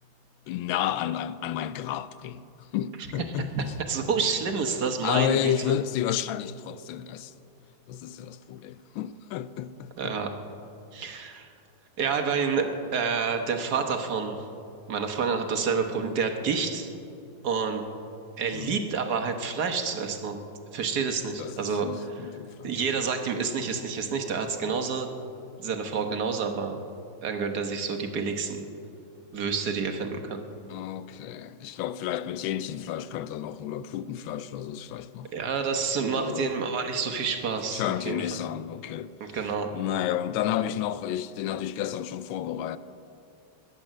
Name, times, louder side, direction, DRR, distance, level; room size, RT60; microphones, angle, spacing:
voice 1, 0.5-3.7 5.0-7.3 7.9-10.2 18.5-18.8 21.4-22.8 24.6-24.8 30.7-35.3 36.2-36.5 37.7-39.4 39.7-42.8, left 10 dB, 80° left, 1.3 m, -31 dB
voice 2, 3.4-5.5 10.0-10.3 10.9-11.5 12.0-14.4 14.9-16.9 17.4-17.8 18.4-20.4 20.7-22.2 22.6-25.1 25.6-26.8 27.2-28.7 29.3-30.4 35.3-38.2 39.2-39.7, right 5 dB, 60° right, 1.5 m, -28 dB
21.0 x 7.7 x 7.4 m
omnidirectional pair, 2.1 m